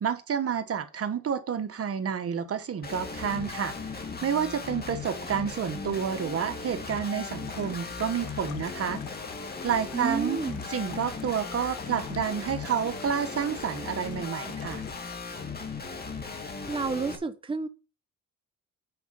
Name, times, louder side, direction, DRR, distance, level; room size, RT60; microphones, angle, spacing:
voice 1, 0.0-3.7 4.2-9.0 9.6-10.4 10.7-14.8, right 7 dB, 50° right, 1.2 m, -29 dB
Guitar, 2.8-17.2, left 4 dB, 30° left, 2.5 m, -37 dB
sound 1, 7.4-15.2, left 8 dB, 85° left, 2.0 m, -47 dB
voice 2, 9.9-10.6 16.7-17.7, right 4 dB, 15° right, 1.0 m, -30 dB
9.4 x 5.0 x 7.1 m
cardioid pair, 90°, 30 cm